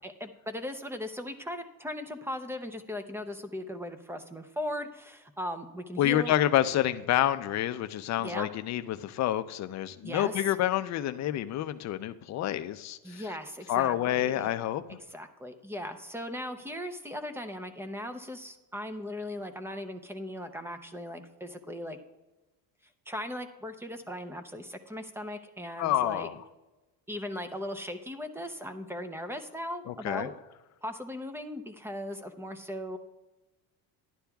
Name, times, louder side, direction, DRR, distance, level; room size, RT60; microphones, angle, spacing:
voice 1, 0.0-6.3 8.2-8.5 10.0-10.4 13.0-14.5 15.1-22.0 23.1-26.3 27.1-30.3 30.8-33.0, left 1 dB, 5° right, 8 dB, 0.6 m, -38 dB
voice 2, 6.0-13.2 13.7-15.0 25.8-26.4 29.9-30.3, left 12 dB, 45° left, 11 dB, 0.5 m, -28 dB
11.5 x 11.0 x 2.3 m, 1.1 s
cardioid pair, 130°, 39 cm